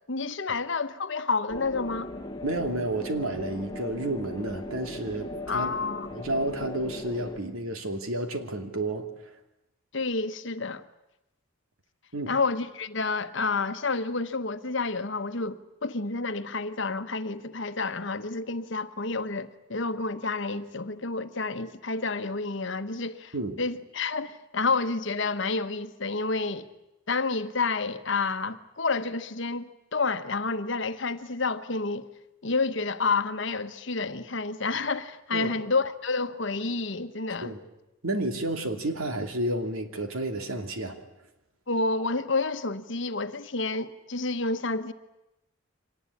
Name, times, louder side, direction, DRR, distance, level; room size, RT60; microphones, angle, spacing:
voice 1, 0.1-2.1 5.5-6.1 9.9-10.9 12.3-26.7 27.1-32.1 32.4-37.5 41.7-44.9, left 3 dB, 60° left, 1.2 m, -29 dB
sound 1, 1.5-7.4, left 1 dB, 20° left, 1.7 m, -38 dB
voice 2, 2.4-5.8 6.1-9.1 12.1-12.3 23.3-23.6 35.3-35.5 37.4-37.6 38.0-41.0, right 1 dB, 90° right, 2.7 m, -31 dB
25.0 x 19.0 x 9.9 m
head